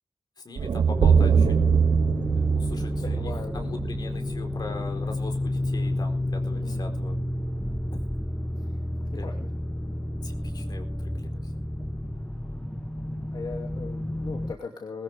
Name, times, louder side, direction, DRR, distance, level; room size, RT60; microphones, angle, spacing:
voice 1, 0.4-1.6 2.4-7.2 9.2-9.4 10.2-11.5, left 3 dB, 65° left, 5 dB, 4.3 m, -40 dB
sound 1, 0.6-4.7, right 6 dB, 80° right, 0.7 m, -23 dB
sound 2, 0.9-14.5, left 1 dB, 10° left, 1.3 m, -31 dB
voice 2, 3.0-3.7 6.5-7.0 8.6-9.5 13.3-15.0, left 4 dB, 80° left, 2 dB, 2.7 m, -39 dB
21.5 x 13.0 x 3.6 m, 0.37 s
wide cardioid pair, 125°, 8 cm